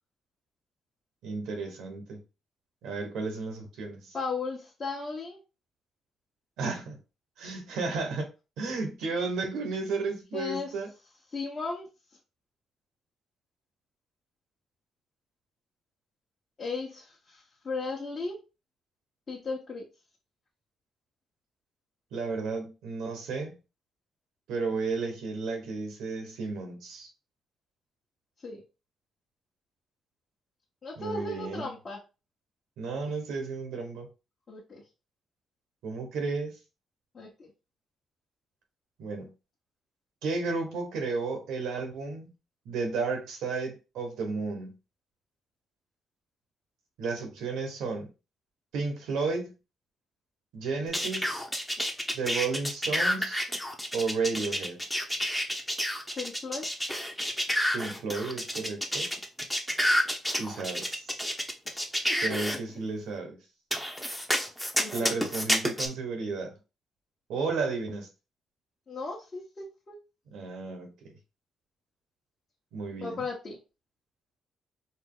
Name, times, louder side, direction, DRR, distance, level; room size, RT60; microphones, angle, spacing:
voice 1, 1.2-2.2 2.8-4.1 6.6-7.0 7.4-8.3 8.6-10.9 22.1-23.6 24.5-27.1 31.0-31.7 32.8-34.1 35.8-36.5 39.0-39.3 40.2-42.3 42.6-44.7 47.0-48.1 48.7-49.5 50.5-51.4 52.1-53.4 53.9-54.8 57.7-59.1 60.3-61.2 62.1-63.4 64.9-66.5 67.3-68.1 70.3-70.9 72.7-73.2, right 4 dB, 85° right, 1.3 m, -33 dB
voice 2, 4.1-5.4 10.3-10.7 11.3-11.9 16.6-18.4 19.3-19.8 28.4-28.6 30.8-32.0 34.5-34.8 37.1-37.5 56.2-56.7 61.6-62.6 64.0-64.1 64.8-65.1 68.9-70.0 73.0-73.6, left 4 dB, 40° left, 1.1 m, -36 dB
sound 1, 50.9-62.6 63.7-65.9, equal, ahead, 0.8 m, -29 dB
4.5 x 2.0 x 3.7 m
cardioid pair, 90°, 0 cm